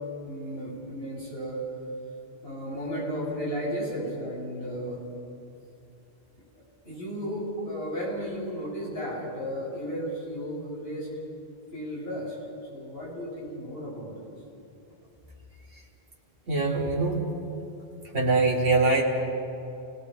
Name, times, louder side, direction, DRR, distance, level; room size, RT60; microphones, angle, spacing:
voice 1, 0.2-1.6 2.4-5.0 6.8-11.1 11.7-12.4 12.7-14.3, equal, 70° left, -6 dB, 7.3 m, -34 dB
voice 2, 16.5-17.2 18.1-19.0, right 3 dB, 60° right, -4 dB, 2.9 m, -23 dB
29.0 x 19.0 x 4.9 m, 2.8 s
omnidirectional pair, 1.1 m